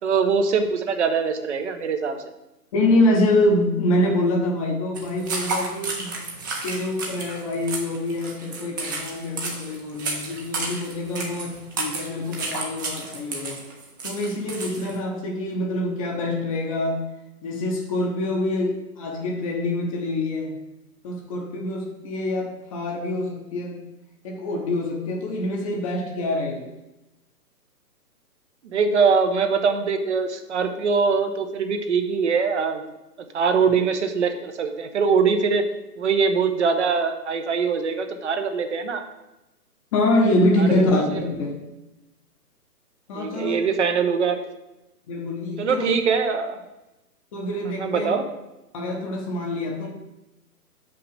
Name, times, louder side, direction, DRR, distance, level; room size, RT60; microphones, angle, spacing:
voice 1, 0.0-2.2 28.7-32.8 33.3-35.6 36.0-39.0 40.6-41.2 43.1-44.4 45.6-46.6 47.8-48.2, right 5 dB, 45° right, 7 dB, 0.9 m, -22 dB
voice 2, 2.7-6.2 6.6-13.6 14.0-17.1 17.4-20.6 21.0-23.8 24.2-26.7 39.9-41.5 43.1-43.5 45.1-45.9 47.3-48.1 48.7-49.9, left 1 dB, 20° left, 1 dB, 0.8 m, -25 dB
sound 1, 5.0-15.0, right 3 dB, 15° right, 0.6 m, -32 dB
5.7 x 5.0 x 6.5 m, 0.96 s
hypercardioid pair, 140°, 47 cm